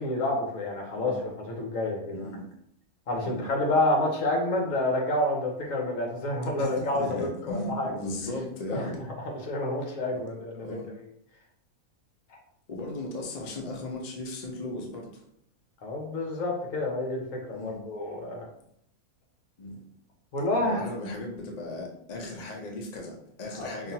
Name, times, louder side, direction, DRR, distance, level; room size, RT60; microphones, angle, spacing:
voice 1, 0.0-2.3 3.1-7.9 8.7-8.8 9.2-11.0 12.3-12.4 15.8-17.2 17.5-18.5 20.3-21.1 23.6-23.9, left 1 dB, 65° left, 0 dB, 1.3 m, -29 dB
voice 2, 2.1-2.5 3.2-3.5 6.6-9.0 10.1-10.2 10.6-10.9 12.7-15.2 17.5-17.8 19.6-19.8 20.5-23.9, left 1 dB, 45° left, 0 dB, 0.5 m, -37 dB
5.4 x 2.4 x 2.8 m, 0.71 s
omnidirectional pair, 1.5 m